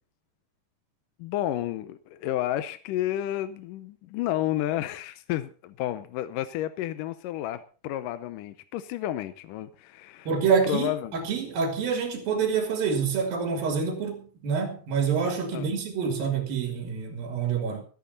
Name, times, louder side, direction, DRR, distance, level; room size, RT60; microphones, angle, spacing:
voice 1, 1.2-10.3 10.6-11.2 15.5-15.7, left 13 dB, 75° left, 2.2 m, -31 dB
voice 2, 10.3-17.9, right 6 dB, 85° right, 4.1 m, -27 dB
16.0 x 13.0 x 4.0 m
omnidirectional pair, 4.1 m